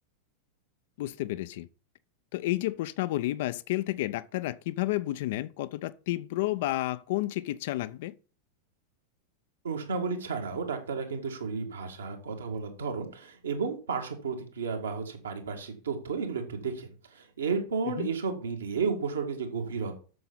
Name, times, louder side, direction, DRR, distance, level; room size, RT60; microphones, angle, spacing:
voice 1, 1.0-1.7 2.3-8.1 18.0-18.1, left 16 dB, 50° left, 0.6 m, -31 dB
voice 2, 9.6-19.9, right 5 dB, 70° right, 2.1 m, -33 dB
7.8 x 6.7 x 5.7 m
figure-of-eight pair, 90°, 0 cm